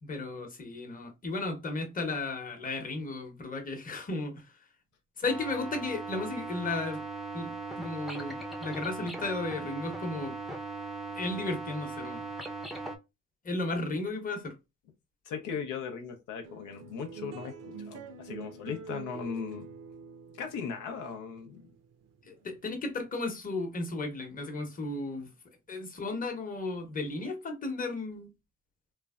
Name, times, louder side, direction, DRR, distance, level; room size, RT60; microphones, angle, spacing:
voice 1, 0.0-4.6 5.2-7.0 7.3-10.3 11.1-12.2 13.4-14.5 22.3-25.3 25.7-28.3, left 2 dB, 30° left, 0.8 m, -34 dB
sound 1, 5.3-13.0, right 3 dB, ahead, 0.5 m, -39 dB
voice 2, 15.3-19.7 20.3-21.6, left 6 dB, 90° left, 0.6 m, -38 dB
sound 2, 16.4-23.1, right 5 dB, 55° right, 0.5 m, -46 dB
3.1 x 2.0 x 2.3 m
cardioid pair, 90°, 30 cm